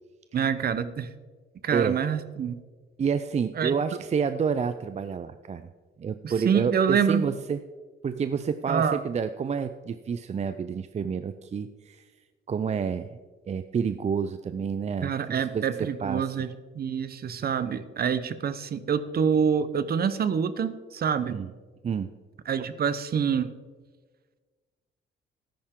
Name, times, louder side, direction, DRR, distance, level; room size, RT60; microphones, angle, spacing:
voice 1, 0.3-1.1 1.6-2.6 3.6-3.7 6.2-7.3 8.7-9.0 15.0-16.5 16.7-21.4 22.5-23.5, right 7 dB, 50° right, 13 dB, 0.9 m, -26 dB
voice 2, 3.0-5.7 6.0-7.6 8.0-12.1 12.5-13.2 13.5-16.3 21.3-21.5 21.8-22.1, right 6 dB, 35° right, 10 dB, 0.5 m, -29 dB
13.5 x 10.5 x 3.8 m, 1.4 s
cardioid pair, 90°, 20 cm